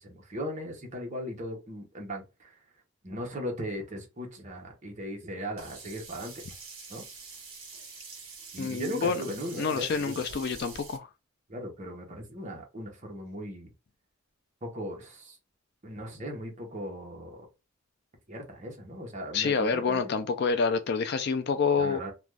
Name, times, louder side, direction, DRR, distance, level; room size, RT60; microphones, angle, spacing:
voice 1, 0.0-2.6 3.0-6.3 6.9-7.0 8.5-10.2 11.5-13.7 14.6-15.4 15.8-17.5 18.3-20.0 21.8-22.1, equal, 35° right, 0.8 m, -38 dB
Sink (filling or washing), 5.6-11.0, right 4 dB, 65° right, 1.2 m, -45 dB
voice 2, 8.6-9.2 9.6-11.1 19.3-22.0, left 5 dB, 50° left, 0.3 m, -27 dB
2.5 x 2.2 x 3.2 m
head